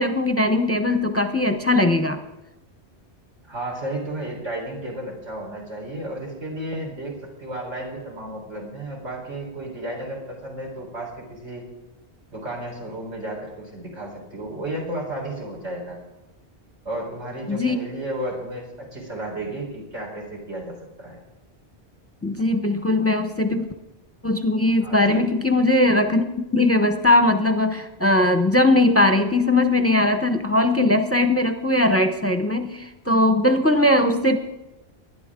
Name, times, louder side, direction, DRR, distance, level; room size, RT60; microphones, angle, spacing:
voice 1, 0.0-2.2 17.5-17.8 22.2-23.7 24.2-34.4, left 2 dB, 15° left, 7 dB, 0.7 m, -20 dB
voice 2, 3.4-11.6 12.3-16.0 16.8-21.2 24.8-25.3, right 1 dB, 90° right, -2 dB, 4.6 m, -33 dB
20.5 x 11.0 x 3.7 m, 0.99 s
omnidirectional pair, 1.1 m